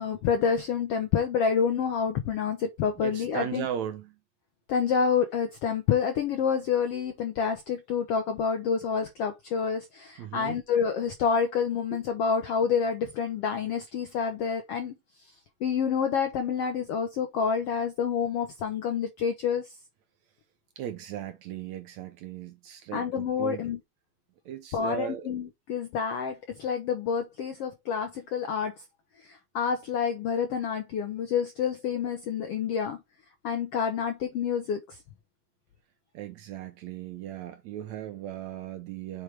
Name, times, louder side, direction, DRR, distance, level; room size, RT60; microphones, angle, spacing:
voice 1, 0.0-3.7 4.7-15.0 15.6-19.7 22.9-23.8 24.7-28.7 29.2-33.0 33.4-35.0, left 6 dB, 80° left, 1.4 m, -28 dB
voice 2, 3.0-4.2 10.2-10.6 11.9-12.0 20.8-23.6 24.5-25.3 36.1-39.2, right 10 dB, 75° right, 1.8 m, -37 dB
8.0 x 4.6 x 3.4 m
omnidirectional pair, 3.9 m